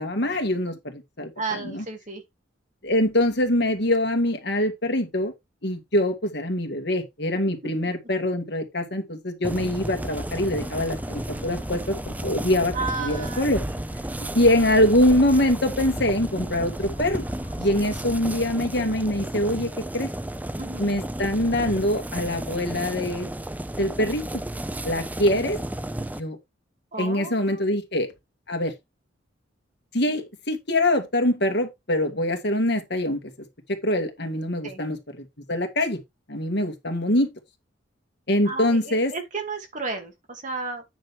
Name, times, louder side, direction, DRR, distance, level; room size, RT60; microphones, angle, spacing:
voice 1, 0.0-1.8 2.8-5.3 5.6-13.6 14.3-17.2 17.6-20.1 20.8-23.3 23.8-24.2 24.8-25.6 26.2-26.4 27.0-28.1 28.5-28.7 29.9-33.2 33.8-35.0 35.5-36.0 36.3-37.3 38.3-39.1, left 1 dB, 60° left, 2.2 m, -24 dB
voice 2, 1.4-2.2 7.4-7.7 12.7-13.5 13.7-13.8 17.7-17.9 20.6-20.9 26.9-27.8 34.6-34.8 38.5-40.8, right 3 dB, 40° right, 2.4 m, -33 dB
sound 1, 9.4-26.2, right 1 dB, 10° right, 0.5 m, -33 dB
Aircraft, 9.9-18.2, equal, 30° left, 5.3 m, -40 dB
9.2 x 6.5 x 3.6 m
head